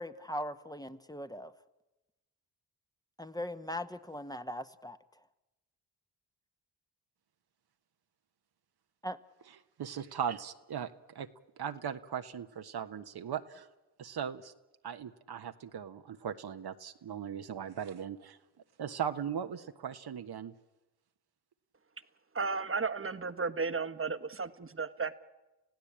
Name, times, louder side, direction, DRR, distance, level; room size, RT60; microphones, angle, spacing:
voice 1, 0.0-1.5 3.2-5.0 9.0-9.2, left 1 dB, 10° left, 9 dB, 1.2 m, -39 dB
voice 2, 9.8-11.3 11.6-13.7 14.0-14.5 14.8-18.4 18.8-20.5, right 8 dB, 60° right, 8 dB, 1.3 m, -38 dB
voice 3, 22.3-25.2, right 4 dB, 30° right, 9 dB, 1.4 m, -34 dB
29.0 x 16.0 x 8.7 m, 1.1 s
supercardioid pair, 45°, 43 cm